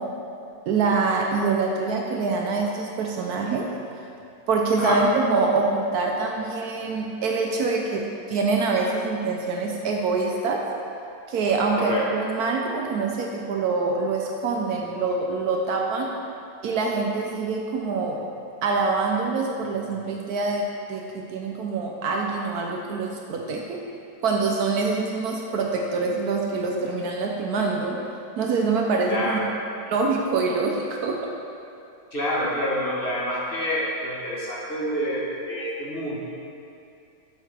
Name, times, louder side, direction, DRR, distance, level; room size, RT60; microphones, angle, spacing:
voice 1, 0.7-3.7 4.5-10.6 11.3-16.1 16.6-18.2 18.6-23.8 24.2-28.0 28.4-29.4 29.9-31.2, right 4 dB, 70° right, 0 dB, 1.0 m, -25 dB
voice 2, 29.1-29.5 32.1-36.2, equal, 35° left, -6 dB, 1.1 m, -27 dB
7.6 x 7.0 x 3.3 m, 2.6 s
omnidirectional pair, 2.0 m